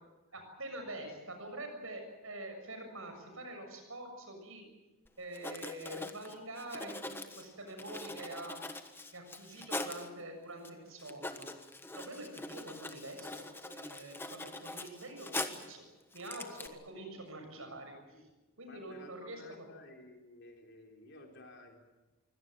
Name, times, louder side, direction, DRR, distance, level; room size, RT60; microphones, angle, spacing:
voice 1, 0.3-4.6 5.2-8.9 9.1-11.5 11.9-15.8 16.1-17.9 18.6-19.4, right 1 dB, 70° right, 5 dB, 6.9 m, -45 dB
Writing, 5.1-5.2 5.3-10.1 10.6-10.7 11.0-15.7 16.1-16.7, left 2 dB, 10° left, 1.3 m, -43 dB
voice 2, 16.9-17.8 18.1-18.3 18.7-21.8, left 1 dB, 55° left, 2 dB, 4.0 m, -55 dB
24.0 x 17.5 x 9.2 m, 1.1 s
head